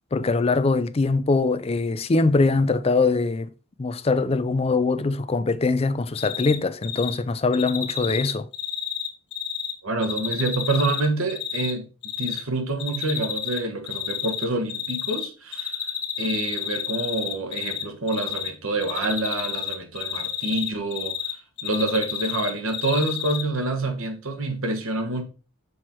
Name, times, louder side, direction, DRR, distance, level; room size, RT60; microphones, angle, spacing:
voice 1, 0.1-3.5 3.8-8.5, left 3 dB, 25° left, 0.4 m, -22 dB
Cricket, 6.1-6.6 6.8-7.1 7.5-9.7 10.0-11.7 12.0-12.4 12.8-13.6 13.9-15.3 15.5-17.8 18.1-18.5 18.8-21.3 21.6-23.4, left 9 dB, 55° left, 1.6 m, -30 dB
voice 2, 9.8-11.9 12.2-15.8 16.2-21.1 21.6-25.2, right 2 dB, 65° right, 1.4 m, -27 dB
6.3 x 4.5 x 4.6 m
head